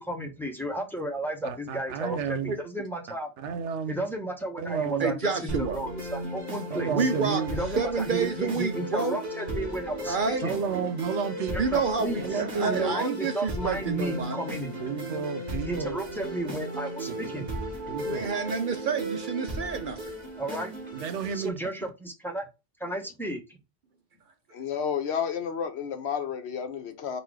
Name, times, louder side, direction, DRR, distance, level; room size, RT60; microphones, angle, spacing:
voice 1, 0.0-3.3 3.9-7.1 7.5-10.2 10.4-10.6 11.5-14.8 15.7-17.5 20.4-20.7 21.3-22.5 22.8-23.4, right 1 dB, ahead, 0.9 m, -33 dB
voice 2, 1.4-2.5 3.4-4.1 4.6-5.1 6.7-7.5 10.4-11.8 12.2-13.0 14.8-16.0 17.1-17.4 17.9-18.3 20.6-20.7 20.9-21.5, right 6 dB, 85° right, 1.0 m, -32 dB
voice 3, 5.0-5.8 6.9-7.4 7.8-9.2 10.1-10.4 11.6-14.4 18.0-20.2, right 5 dB, 55° right, 0.6 m, -29 dB
sound 1, 5.5-21.5, right 1 dB, 40° right, 1.5 m, -36 dB
voice 4, 24.5-27.2, left 7 dB, 70° left, 1.0 m, -31 dB
4.1 x 2.5 x 4.7 m
omnidirectional pair, 1.2 m